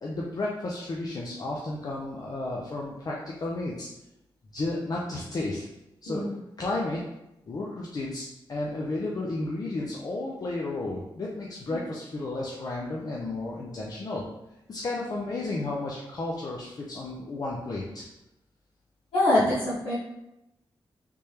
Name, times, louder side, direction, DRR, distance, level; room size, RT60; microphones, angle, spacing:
voice 1, 0.0-3.9 4.5-5.7 6.0-6.2 6.6-7.0 7.5-14.2 14.7-18.0, left 2 dB, 45° left, -3 dB, 0.5 m, -32 dB
voice 2, 19.1-19.9, left 1 dB, 85° left, -11 dB, 1.0 m, -24 dB
3.4 x 3.2 x 2.8 m, 0.90 s
wide cardioid pair, 115°, 9 cm